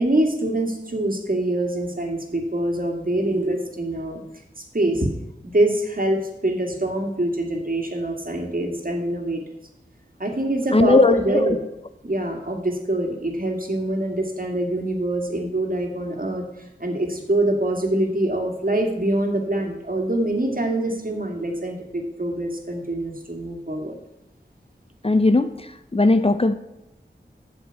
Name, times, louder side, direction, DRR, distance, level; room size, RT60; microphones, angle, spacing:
voice 1, 0.0-4.2 4.6-5.1 5.4-9.4 10.2-11.6 12.0-16.4 16.8-24.0, right 1 dB, 45° right, 2 dB, 2.3 m, -24 dB
voice 2, 10.7-11.4 25.0-26.5, left 2 dB, 30° left, 11 dB, 0.6 m, -18 dB
8.1 x 7.2 x 8.1 m, 0.92 s
wide cardioid pair, 55°, 19 cm